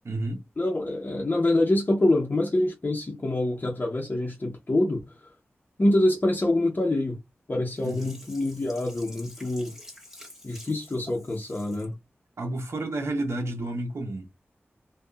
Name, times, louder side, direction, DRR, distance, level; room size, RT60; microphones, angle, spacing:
voice 1, 0.0-0.4 7.8-8.1 12.4-14.3, right 2 dB, 70° right, 0.7 m, -31 dB
voice 2, 0.6-5.0 5.8-7.2 7.5-9.7 10.4-11.9, left 1 dB, 40° left, 0.8 m, -25 dB
Sink (filling or washing), 7.7-11.9 12.4-12.5, left 1 dB, 10° right, 1.5 m, -48 dB
2.7 x 2.3 x 2.4 m
cardioid pair, 45°, 5 cm